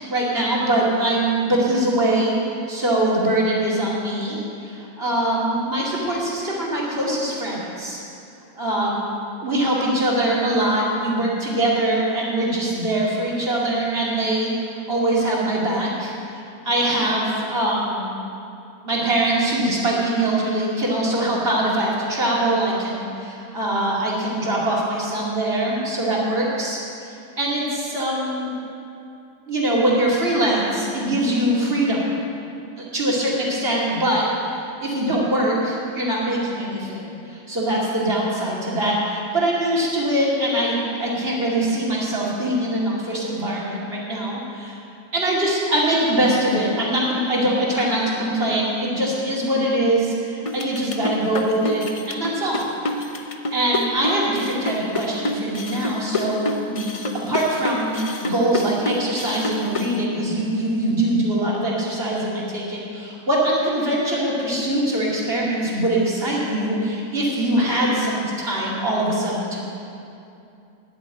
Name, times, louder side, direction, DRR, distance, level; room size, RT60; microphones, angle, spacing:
voice 1, 0.1-8.0 8.5-9.0 9.4-18.1 18.8-26.8 27.4-28.5 29.5-32.0 32.8-34.2 34.5-44.8 45.1-52.7 53.2-56.8 57.1-69.6, right 1 dB, 40° right, -5 dB, 2.9 m, -23 dB
sound 1, 50.5-60.0, left 2 dB, 35° left, 0.5 m, -27 dB
10.5 x 9.3 x 8.9 m, 2.7 s
omnidirectional pair, 1.6 m